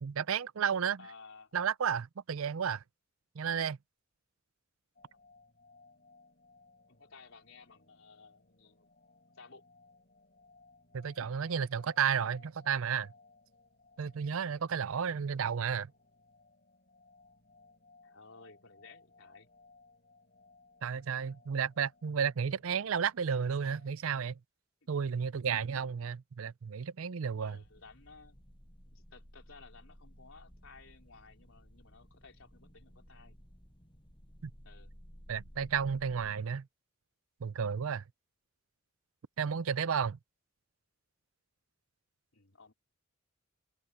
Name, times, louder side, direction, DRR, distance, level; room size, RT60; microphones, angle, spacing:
voice 1, 0.0-1.0 1.5-2.8 3.4-3.8 10.9-13.1 14.0-15.9 20.8-24.4 24.9-27.6 34.4-34.5 35.3-36.7 37.4-38.0 39.4-40.2, right 7 dB, 75° right, 0.5 m, -32 dB
voice 2, 1.0-1.5 6.9-8.9 9.3-9.7 18.0-19.5 27.4-28.4 28.9-33.4 34.6-34.9 39.5-39.7 42.3-42.7, left 4 dB, 70° left, 4.2 m, -56 dB
sound 1, 5.0-23.9, left 3 dB, 45° left, 6.8 m, -63 dB
sound 2, 27.6-36.3, equal, 25° left, 6.2 m, -56 dB
head